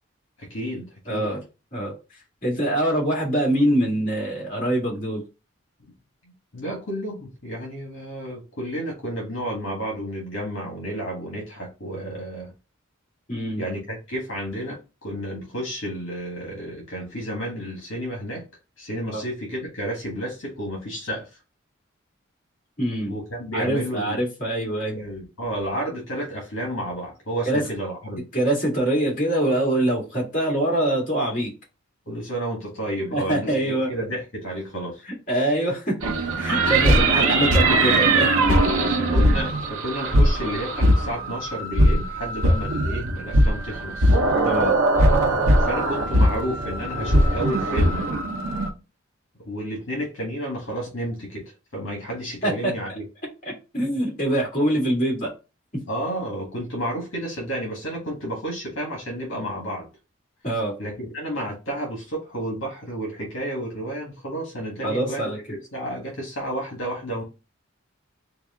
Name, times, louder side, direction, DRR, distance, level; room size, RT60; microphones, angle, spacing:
voice 1, 0.4-1.3 6.5-12.5 13.6-18.4 18.8-21.3 23.1-24.2 24.9-28.2 32.1-35.0 36.8-37.3 39.0-44.2 45.6-48.0 49.4-51.4 51.7-53.0 55.9-59.9 60.8-65.3 65.7-67.2, right 1 dB, 70° left, -1 dB, 1.5 m, -31 dB
voice 2, 1.1-1.4 1.7-1.9 2.4-5.2 13.3-13.6 19.1-19.2 22.8-23.1 23.5-25.0 27.5-27.6 28.3-31.5 33.1-33.9 35.0-36.0 36.4-38.6 44.4-44.8 52.4-52.7 53.4-55.3 55.7-55.8 60.4-60.7 64.8-65.4, right 1 dB, 40° left, -3 dB, 2.1 m, -24 dB
sound 1, 36.0-48.7, right 1 dB, 90° right, 0.8 m, -20 dB
4.6 x 2.4 x 3.6 m, 0.30 s
head